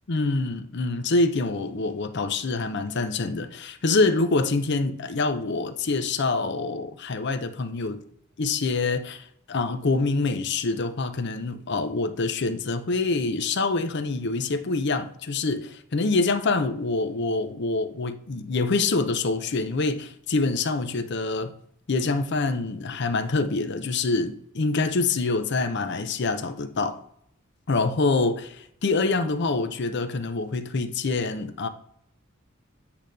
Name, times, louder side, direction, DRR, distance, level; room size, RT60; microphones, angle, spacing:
voice 1, 0.1-8.0 8.4-21.5 21.9-27.0 27.7-28.5 28.8-31.7, left 3 dB, 60° left, 0.6 m, -25 dB
8.4 x 3.0 x 5.2 m
head